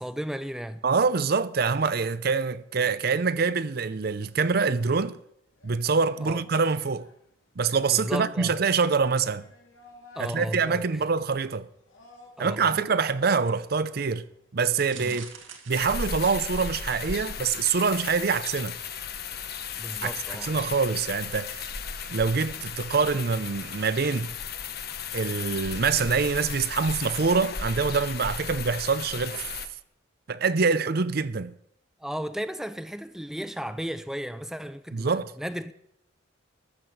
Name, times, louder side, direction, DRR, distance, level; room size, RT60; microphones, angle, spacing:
voice 1, 0.0-0.8 6.2-6.4 7.9-8.6 10.1-11.0 12.4-12.8 14.9-15.2 19.8-20.7 32.0-35.7, equal, ahead, 0.4 m, -35 dB
voice 2, 0.8-5.2 5.6-7.1 7.6-9.5 10.2-11.7 12.4-14.2 14.5-15.3 15.7-18.8 20.0-21.7 22.1-24.3 25.1-29.4 30.3-31.5 34.9-35.3, right 5 dB, 55° right, 0.6 m, -25 dB
sound 1, 5.5-17.5, left 2 dB, 90° left, 2.9 m, -55 dB
sound 2, 14.7-17.0 17.5-17.8 18.1-18.2, right 7 dB, 90° right, 2.0 m, -46 dB
sound 3, 15.7-29.7, left 6 dB, 55° left, 1.1 m, -35 dB
13.5 x 7.3 x 6.4 m
head